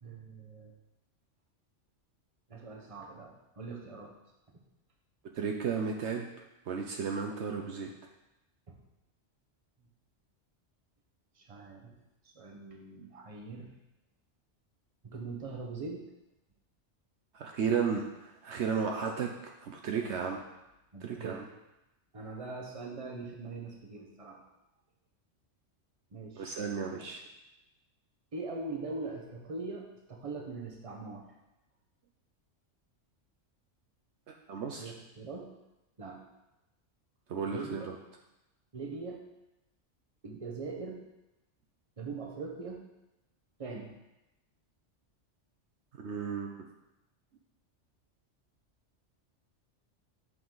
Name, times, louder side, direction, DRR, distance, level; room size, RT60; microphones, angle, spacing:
voice 1, 0.0-0.7 2.5-4.1 4.5-4.6 8.7-8.8 11.3-11.9 12.2-13.7 15.0-16.0 20.0-20.3 20.9-21.4 22.1-24.4 26.1-26.5 28.3-31.3 34.8-35.5 36.0-36.2 37.5-37.9 38.7-39.2 40.2-41.0 42.0-42.8 43.6-44.0, right 3 dB, 30° right, 0 dB, 1.1 m, -42 dB
voice 2, 5.3-6.3 6.7-7.9 17.3-20.4 21.0-21.5 26.4-27.2 34.5-34.9 37.3-38.0 46.0-46.7, right 6 dB, 70° right, 2 dB, 1.0 m, -34 dB
7.8 x 6.0 x 3.9 m, 0.93 s
omnidirectional pair, 1.3 m